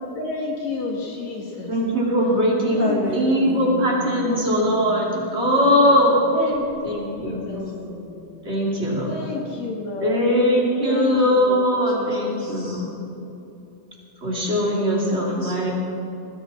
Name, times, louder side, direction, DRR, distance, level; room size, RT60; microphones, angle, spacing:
voice 1, 0.1-1.7 2.7-3.5 4.1-4.2 6.3-7.6 9.1-10.2 10.8-11.7, left 3 dB, 65° left, 0 dB, 2.6 m, -30 dB
voice 2, 1.7-2.9 3.1-6.2 6.8-7.4 8.4-9.1 10.0-12.9 14.2-15.7, equal, 20° right, -4 dB, 2.9 m, -20 dB
voice 3, 2.8-3.7 7.5-8.5 11.9-12.8 14.6-15.7, left 2 dB, 40° left, -3 dB, 1.9 m, -33 dB
sound 1, 3.4-8.2, left 1 dB, 40° right, 1.6 m, -40 dB
20.0 x 15.5 x 4.3 m, 2.9 s
omnidirectional pair, 3.5 m